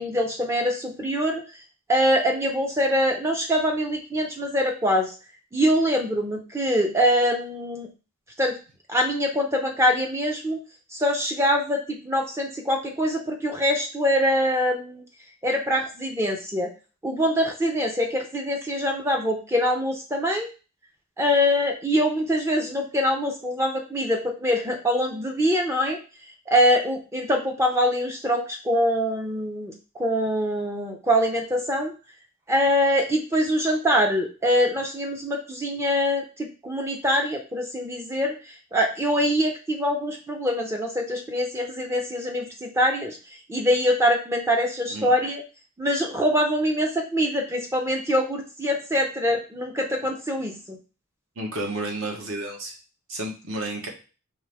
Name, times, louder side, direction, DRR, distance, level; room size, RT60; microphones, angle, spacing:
voice 1, 0.0-1.4 1.9-5.1 5.5-7.9 8.4-8.6 8.9-10.6 10.9-15.0 15.4-16.7 17.0-20.5 21.2-26.0 26.5-29.7 30.0-31.9 32.5-38.3 38.7-43.2 43.5-45.4 45.8-50.8, equal, 10° right, 2 dB, 0.5 m, -24 dB
voice 2, 51.4-52.7 53.1-53.9, right 1 dB, 65° right, 2 dB, 1.0 m, -31 dB
4.5 x 2.6 x 3.4 m, 0.34 s
head